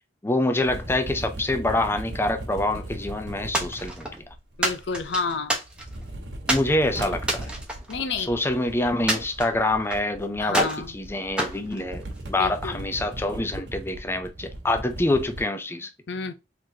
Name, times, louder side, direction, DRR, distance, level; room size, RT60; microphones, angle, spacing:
voice 1, 0.2-4.1 6.5-7.5 8.2-15.9, left 1 dB, 15° left, 0.5 m, -26 dB
sound 1, 0.6-5.3 5.6-15.4, right 1 dB, 80° right, 1.3 m, -38 dB
sound 2, 3.5-4.2 4.6-6.0 6.5-6.7 7.2-8.5 9.1-10.1 10.5-10.9 11.4-12.4, right 1 dB, 5° right, 1.0 m, -28 dB
voice 2, 4.6-5.6 7.9-8.4 10.4-10.9 12.4-12.8 16.1-16.3, left 4 dB, 75° left, 0.6 m, -30 dB
3.9 x 3.1 x 2.7 m
head